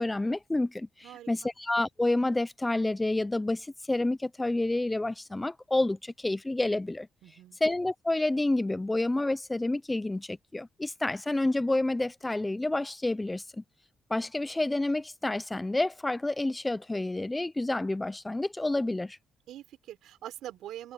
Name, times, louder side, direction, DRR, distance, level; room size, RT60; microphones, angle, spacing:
voice 1, 0.0-7.1 7.6-13.6 14.1-19.2, left 2 dB, 15° left, 0.7 m, -29 dB
voice 2, 1.0-1.5 7.2-7.6 19.5-20.9, right 12 dB, 80° right, 5.8 m, -44 dB
open air
cardioid pair, 90°, 0 cm